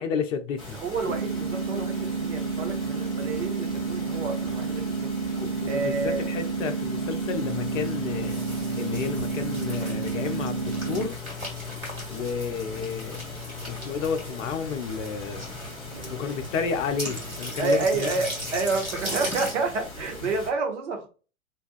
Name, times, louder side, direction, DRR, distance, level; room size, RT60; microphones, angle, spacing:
voice 1, 0.0-0.8 5.4-8.4 8.8-11.2 12.1-13.2 13.7-15.5 16.1-18.1, left 6 dB, 65° left, 0.5 m, -31 dB
sound 1, 0.6-20.5, left 1 dB, 10° left, 0.7 m, -41 dB
voice 2, 0.7-5.2 5.7-6.2 15.9-16.3 17.6-21.1, right 3 dB, 55° right, 0.8 m, -29 dB
sound 2, 1.1-11.1, right 4 dB, 40° right, 0.4 m, -30 dB
sound 3, 7.4-19.5, left 2 dB, 85° right, 1.4 m, -37 dB
2.6 x 2.2 x 2.4 m
figure-of-eight pair, 105°, 41 cm